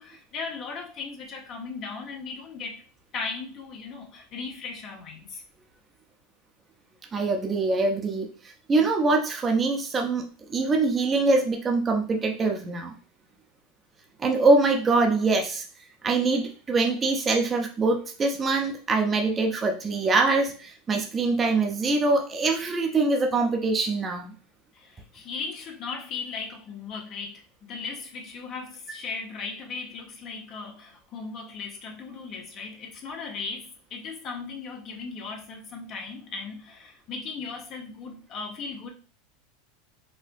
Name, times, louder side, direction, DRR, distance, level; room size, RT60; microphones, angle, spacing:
voice 1, 0.0-2.8 3.1-5.4 24.7-38.9, left 4 dB, 45° left, 1 dB, 0.9 m, -37 dB
voice 2, 7.1-8.3 8.7-12.9 14.2-15.6 16.0-24.3, right 3 dB, 25° right, 2 dB, 0.7 m, -24 dB
4.3 x 2.1 x 2.6 m, 0.38 s
hypercardioid pair, 95°, 0 cm